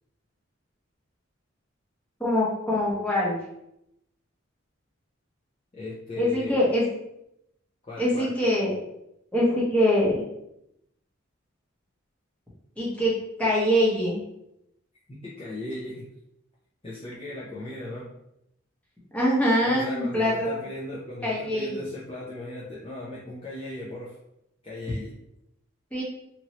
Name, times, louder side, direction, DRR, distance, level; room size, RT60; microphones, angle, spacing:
voice 1, 2.2-3.4 6.2-6.9 8.0-8.7 9.3-10.2 12.8-14.2 19.1-20.6 21.2-21.8 25.9-26.0, equal, 5° left, -6 dB, 0.8 m, -24 dB
voice 2, 5.7-6.6 7.9-8.3 15.2-16.0 16.8-18.1 19.6-24.2 24.6-25.1, left 2 dB, 25° left, -7 dB, 0.5 m, -37 dB
2.9 x 2.6 x 2.9 m, 0.82 s
head